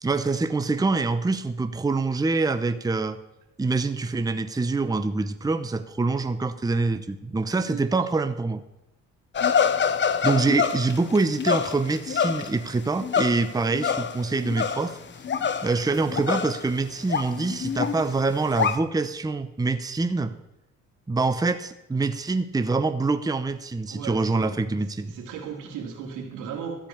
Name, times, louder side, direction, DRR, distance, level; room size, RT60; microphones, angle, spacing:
voice 1, 0.0-3.2 3.6-8.6 10.2-15.0 15.6-20.3 21.1-25.1, right 3 dB, 10° right, 10 dB, 0.7 m, -25 dB
voice 2, 7.5-7.9 23.9-26.9, right 7 dB, 90° right, 2 dB, 2.4 m, -37 dB
sound 1, 9.3-15.0 15.2-16.8 17.1-18.8, left 7 dB, 40° left, 0.8 m, -26 dB
13.5 x 5.0 x 8.6 m, 0.88 s
cardioid pair, 90°, 30 cm